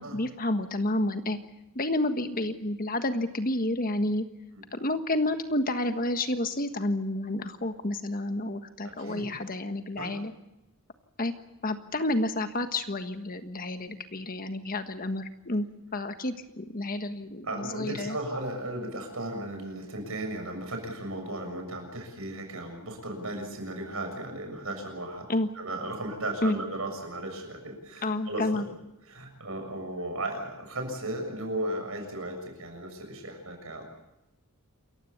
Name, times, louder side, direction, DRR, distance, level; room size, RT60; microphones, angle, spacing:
voice 1, 0.0-1.4 1.7-4.2 4.7-10.3 11.2-11.3 11.6-15.7 15.9-18.2 25.3-25.5 26.4-26.6 28.0-28.6, left 1 dB, 40° left, 8 dB, 1.5 m, -30 dB
voice 2, 8.8-9.3 10.0-10.1 17.4-25.3 25.5-28.6 29.1-33.9, right 1 dB, 70° right, 4 dB, 7.0 m, -35 dB
28.0 x 15.5 x 8.5 m, 0.90 s
head